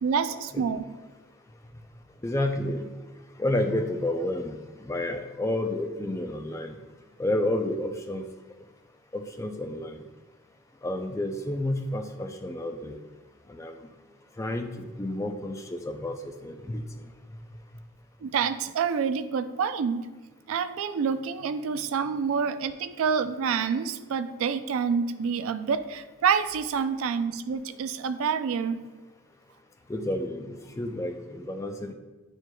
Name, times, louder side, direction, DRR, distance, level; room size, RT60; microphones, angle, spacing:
voice 1, 0.0-0.8 18.2-20.1 20.5-28.8, right 6 dB, 80° right, 11 dB, 0.3 m, -27 dB
voice 2, 2.2-2.9 3.4-6.8 7.2-8.2 9.1-10.0 10.8-13.0 13.5-13.8 14.4-16.1 16.4-16.8 29.9-31.9, left 1 dB, 15° left, 5 dB, 0.3 m, -30 dB
9.6 x 4.5 x 2.2 m, 1.2 s
head